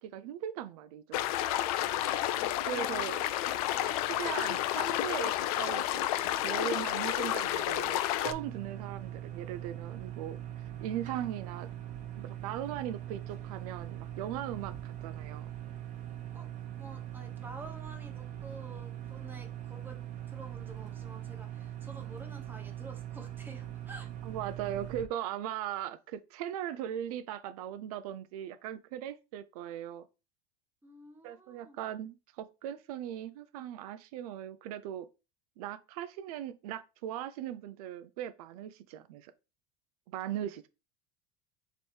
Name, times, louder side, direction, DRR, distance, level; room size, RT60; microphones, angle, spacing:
voice 1, 0.0-1.2 2.7-3.2 4.1-10.4 10.8-11.7 12.1-15.5 24.2-30.1 31.2-35.1 35.6-39.3 40.1-40.7, right 11 dB, 80° right, 0.4 m, -39 dB
sound 1, 1.1-8.3, left 13 dB, 75° left, 0.4 m, -31 dB
voice 2, 2.7-3.1 3.5-4.0 16.3-16.5 16.8-20.0 20.3-24.1 30.8-31.8, right 2 dB, 10° right, 1.0 m, -50 dB
sound 2, 8.2-25.1, right 11 dB, 40° right, 0.9 m, -42 dB
3.2 x 3.0 x 4.3 m
supercardioid pair, 130°, 19 cm